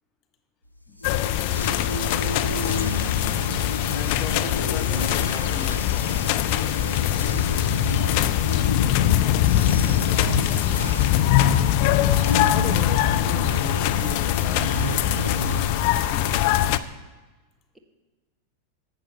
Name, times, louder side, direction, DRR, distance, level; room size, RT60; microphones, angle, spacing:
sound 1, 0.8-16.7, equal, 90° right, 0.5 m, -32 dB
voice 1, 0.9-1.3 3.9-6.2 12.5-16.3, left 8 dB, 30° left, 5 dB, 0.8 m, -38 dB
sound 2, 1.0-16.8, left 12 dB, 45° left, 0.4 m, -22 dB
voice 2, 7.1-7.5 7.9-11.2, right 1 dB, 5° right, 5 dB, 1.1 m, -44 dB
10.5 x 7.9 x 5.6 m, 1.2 s
figure-of-eight pair, 90°, 0 cm